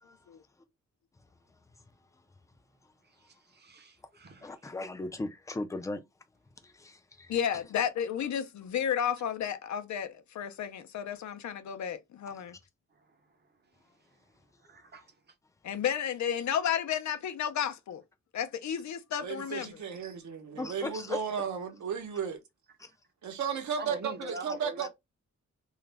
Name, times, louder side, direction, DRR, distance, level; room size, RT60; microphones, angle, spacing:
voice 1, 3.6-4.4 14.7-15.0 23.8-24.9, right 3 dB, 35° right, 0.6 m, -42 dB
voice 2, 4.4-6.0 6.6-7.4 20.6-21.2 22.8-22.9, left 2 dB, 10° left, 0.3 m, -37 dB
voice 3, 7.3-12.6 15.6-18.0 18.3-19.7, left 8 dB, 75° left, 0.5 m, -32 dB
voice 4, 19.2-22.4 23.2-24.9, right 6 dB, 75° right, 0.7 m, -34 dB
2.3 x 2.0 x 3.2 m
wide cardioid pair, 155°, 29 cm